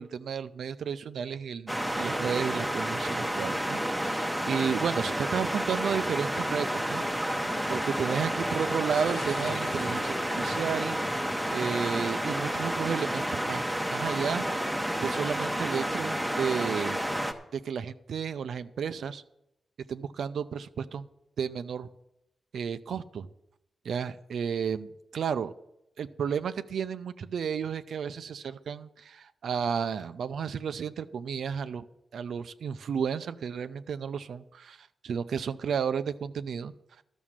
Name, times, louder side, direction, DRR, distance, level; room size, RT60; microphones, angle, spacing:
voice 1, 0.0-7.0 7.7-11.0 11.5-14.4 15.0-17.0 17.5-19.2 19.9-21.1 21.4-21.9 22.5-23.3 23.8-25.5 26.0-31.8 32.1-36.7, right 7 dB, 75° right, 11 dB, 0.5 m, -32 dB
sound 1, 1.7-17.3, equal, ahead, 0.9 m, -30 dB
sound 2, 6.5-11.8, left 3 dB, 85° left, 1.9 m, -45 dB
12.5 x 6.2 x 7.4 m, 0.83 s
wide cardioid pair, 150°, 0 cm